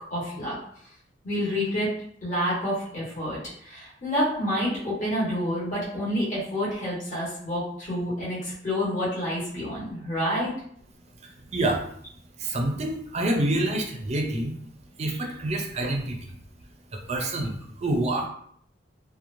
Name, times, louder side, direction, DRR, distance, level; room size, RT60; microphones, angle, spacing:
voice 1, 0.1-0.6 1.2-1.9 2.2-10.5, equal, 40° left, -8 dB, 1.3 m, -28 dB
voice 2, 11.2-11.8 12.4-14.5 15.0-16.3 16.9-18.3, right 1 dB, 35° right, 2 dB, 0.4 m, -27 dB
2.9 x 2.1 x 2.5 m, 0.64 s
head